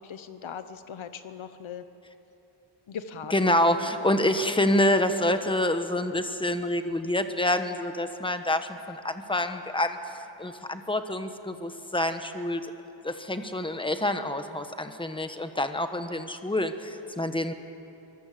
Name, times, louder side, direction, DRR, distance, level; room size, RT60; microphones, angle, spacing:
voice 1, 0.0-1.9 2.9-3.3, left 7 dB, 70° left, 10 dB, 1.1 m, -39 dB
voice 2, 3.3-10.0 10.4-12.6 13.0-17.5, left 1 dB, 10° left, 8 dB, 1.1 m, -27 dB
24.0 x 21.0 x 7.7 m, 3.0 s
wide cardioid pair, 150°, 48 cm